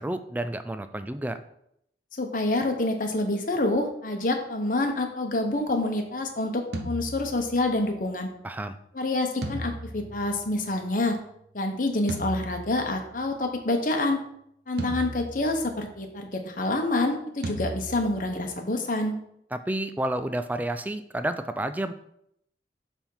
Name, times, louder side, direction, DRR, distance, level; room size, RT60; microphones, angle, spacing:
voice 1, 0.0-1.4 8.4-8.8 19.5-21.9, right 1 dB, 10° right, 9 dB, 0.4 m, -30 dB
voice 2, 2.2-8.3 8.9-11.2 11.5-14.2 14.7-19.2, left 2 dB, 50° left, 4 dB, 1.0 m, -27 dB
sound 1, 6.7-7.9 9.4-10.9 12.1-13.3 14.8-16.0 17.4-18.6, right 1 dB, 65° right, 0.7 m, -36 dB
7.2 x 3.6 x 5.6 m, 0.73 s
head